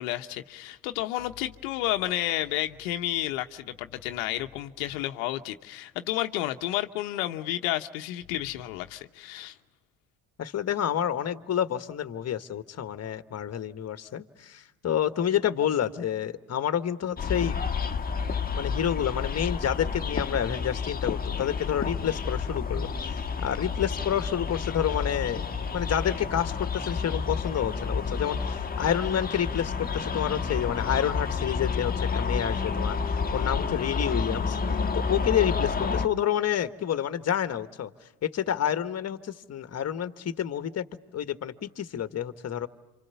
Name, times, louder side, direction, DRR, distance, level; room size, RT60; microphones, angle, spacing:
voice 1, 0.0-9.6, left 14 dB, 90° left, 1.0 m, -31 dB
voice 2, 10.4-17.6 18.5-25.4 25.7-34.6 34.9-37.9 38.2-40.9 41.1-42.7, left 9 dB, 40° left, 1.5 m, -29 dB
sound 1, 17.2-36.1, left 5 dB, 20° left, 1.5 m, -30 dB
27.5 x 26.0 x 7.0 m
supercardioid pair, 90°, 40 cm